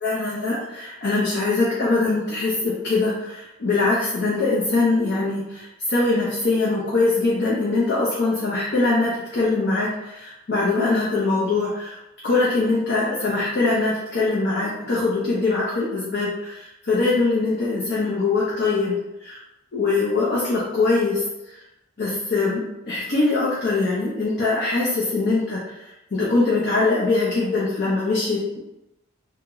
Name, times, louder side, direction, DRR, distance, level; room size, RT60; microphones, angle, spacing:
voice 1, 0.0-9.9 10.1-11.9 12.2-19.0 19.2-19.4 19.7-21.2 22.0-25.6 26.1-28.6, left 3 dB, 50° left, -6 dB, 0.5 m, -22 dB
2.9 x 2.0 x 3.5 m, 0.95 s
head